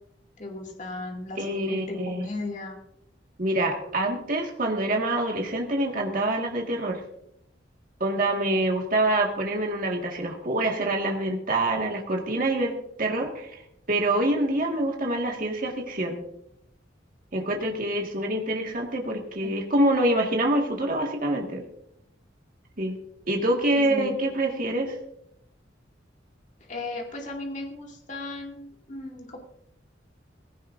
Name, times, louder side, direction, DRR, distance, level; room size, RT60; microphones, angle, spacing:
voice 1, 0.4-2.8 19.4-19.5 23.7-24.2 26.6-29.4, left 2 dB, 40° left, 0 dB, 2.4 m, -36 dB
voice 2, 1.4-2.3 3.4-7.0 8.0-13.6 13.9-16.2 17.3-21.7 22.8-23.0 23.3-25.0, right 1 dB, 45° right, 1 dB, 1.8 m, -26 dB
18.0 x 16.5 x 2.6 m, 0.76 s
head